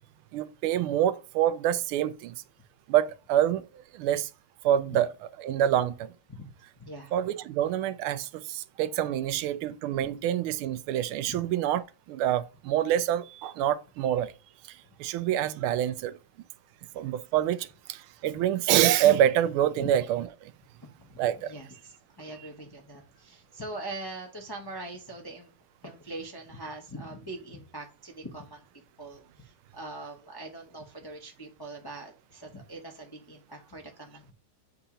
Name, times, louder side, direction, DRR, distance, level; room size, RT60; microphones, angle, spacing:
voice 1, 0.3-2.4 2.9-3.7 3.9-4.3 4.6-5.1 5.4-6.1 7.1-11.8 12.1-14.3 14.7-16.1 16.9-20.5 21.2-21.5 22.4-22.5, right 11 dB, 90° right, 1.4 m, -26 dB
voice 2, 6.8-7.1 11.3-11.4 19.8-19.9 21.0-21.1 21.4-25.5 25.8-28.6 29.0-34.3, right 2 dB, 20° left, 0.6 m, -42 dB
7.8 x 2.8 x 5.0 m
omnidirectional pair, 2.3 m